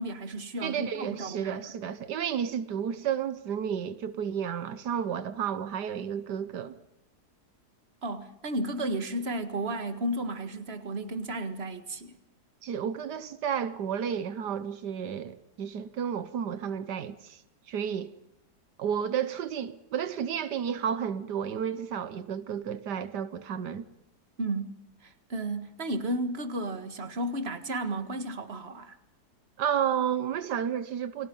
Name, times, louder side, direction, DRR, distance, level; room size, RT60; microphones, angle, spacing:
voice 1, 0.0-1.7 8.0-12.1 24.4-24.7 25.0-29.0, right 1 dB, 40° right, 2.0 m, -33 dB
voice 2, 0.6-6.8 12.6-17.4 17.7-18.1 18.8-23.8 29.6-31.3, right 8 dB, 85° right, 1.6 m, -32 dB
30.0 x 22.5 x 5.5 m
omnidirectional pair, 1.8 m